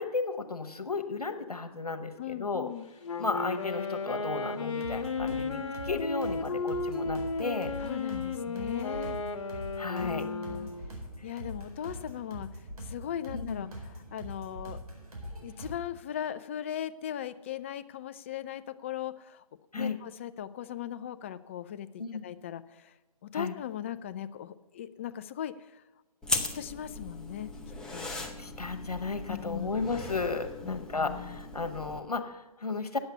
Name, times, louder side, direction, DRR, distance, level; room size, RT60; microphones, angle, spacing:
voice 1, 0.0-2.7 3.2-7.7 9.8-10.2 13.3-13.7 19.7-20.0 22.0-22.2 23.3-23.5 28.1-33.0, left 4 dB, 85° left, 7 dB, 1.3 m, -34 dB
voice 2, 2.2-2.9 5.2-5.7 6.5-6.6 7.8-9.2 10.0-10.7 11.2-14.8 15.3-19.4 19.7-22.9 23.2-25.8 26.3-27.5 27.9-28.1 29.3-29.7 30.6-31.4, left 10 dB, 20° left, 13 dB, 0.3 m, -39 dB
Wind instrument woodwind instrument, 3.0-10.9, left 3 dB, 50° left, 1.4 m, -34 dB
sound 1, 4.7-15.8, equal, 75° right, 4.3 m, -43 dB
sound 2, 26.2-32.0, left 2 dB, 5° left, 0.8 m, -38 dB
9.4 x 7.9 x 8.1 m, 1.1 s
figure-of-eight pair, 135°, 19 cm